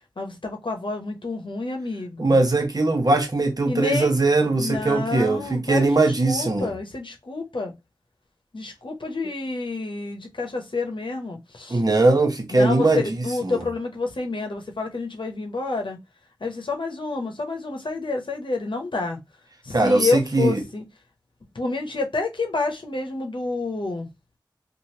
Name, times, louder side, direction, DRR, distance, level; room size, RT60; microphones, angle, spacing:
voice 1, 0.2-2.4 3.7-4.1 4.5-7.7 8.5-11.8 12.5-16.0 16.4-19.2 19.6-20.8 21.5-24.1, left 3 dB, 80° left, 0.8 m, -29 dB
voice 2, 2.2-6.7 11.7-13.2 13.4-13.6 19.7-20.6, right 2 dB, 50° right, 0.9 m, -20 dB
3.1 x 2.5 x 2.8 m
wide cardioid pair, 45°, 8 cm